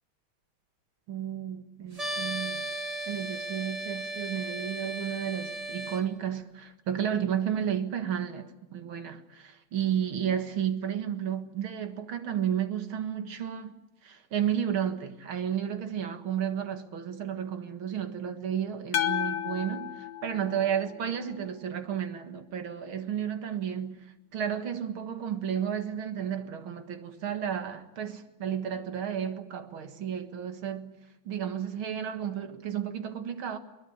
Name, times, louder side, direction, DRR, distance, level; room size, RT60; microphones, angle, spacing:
voice 1, 1.1-2.6 3.1-24.1 24.3-31.0 31.3-33.6, right 9 dB, 90° right, 2.5 m, -32 dB
sound 1, 1.9-6.0, right 1 dB, 20° right, 1.9 m, -35 dB
sound 2, 18.9-21.2, left 10 dB, 60° left, 1.7 m, -32 dB
22.5 x 21.5 x 9.6 m
omnidirectional pair, 2.2 m